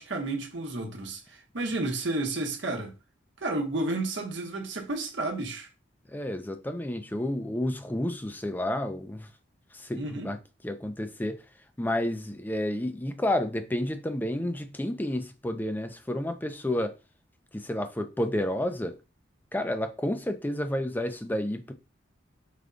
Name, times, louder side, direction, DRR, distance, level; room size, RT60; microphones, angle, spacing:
voice 1, 0.0-2.9 3.4-5.7 9.9-10.3, right 2 dB, 65° right, 1.0 m, -31 dB
voice 2, 6.1-9.3 9.7-10.4 10.6-11.4 11.8-16.9 17.5-19.0 19.5-21.7, left 1 dB, 10° left, 0.4 m, -30 dB
4.9 x 2.2 x 3.8 m
head